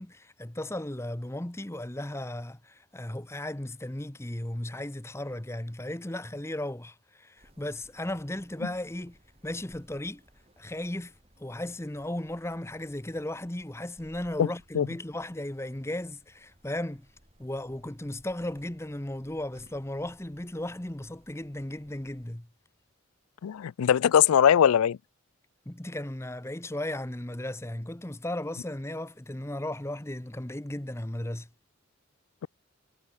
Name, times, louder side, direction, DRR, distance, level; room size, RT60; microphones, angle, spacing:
voice 1, 0.0-9.2 9.4-10.2 10.6-11.1 11.4-17.1 17.4-22.5 25.7-31.5, left 1 dB, 10° left, 0.8 m, -36 dB
sound 1, 7.4-22.3, equal, 30° right, 5.5 m, -61 dB
voice 2, 23.4-25.0, left 8 dB, 85° left, 0.4 m, -21 dB
head